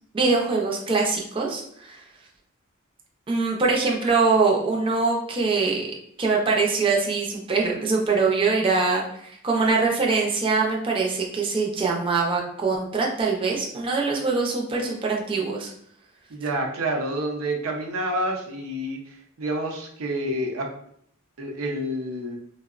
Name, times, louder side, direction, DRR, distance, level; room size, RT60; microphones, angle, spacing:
voice 1, 0.1-2.0 3.3-5.9 6.2-15.7, right 4 dB, 25° right, -1 dB, 0.4 m, -23 dB
voice 2, 16.3-20.7 21.4-22.4, right 1 dB, 90° right, 2 dB, 0.6 m, -28 dB
3.5 x 2.0 x 2.3 m, 0.68 s
head